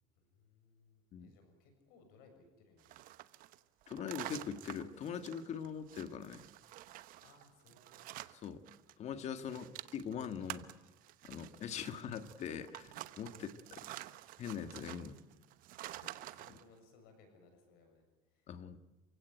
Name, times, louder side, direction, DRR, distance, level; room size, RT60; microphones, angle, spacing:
voice 1, 0.2-3.0 7.2-8.1 9.4-9.7 13.3-13.5 14.9-15.0 15.8-18.6, left 4 dB, 70° left, 5 dB, 7.0 m, -64 dB
sound 1, 2.8-8.9 9.2-16.6, right 15 dB, 55° right, 1.0 m, -49 dB
voice 2, 3.9-6.4 8.4-8.6 9.0-9.7 9.9-10.7 11.3-12.9 13.2-13.5 14.4-15.1 18.5-18.8, left 7 dB, 40° left, 10 dB, 1.6 m, -42 dB
28.0 x 16.5 x 9.2 m, 1.1 s
supercardioid pair, 125°, 17 cm